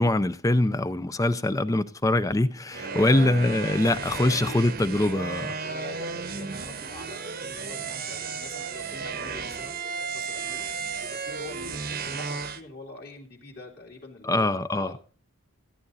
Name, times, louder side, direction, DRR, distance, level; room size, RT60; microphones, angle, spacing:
voice 1, 0.0-5.6 14.2-15.0, left 1 dB, 15° left, 0.4 m, -23 dB
voice 2, 2.7-3.5 4.1-4.6 5.6-10.7 11.0-15.0, left 2 dB, 50° left, 2.3 m, -44 dB
sound 1, 2.7-12.6, right 5 dB, 45° right, 0.9 m, -34 dB
14.0 x 9.0 x 4.0 m
head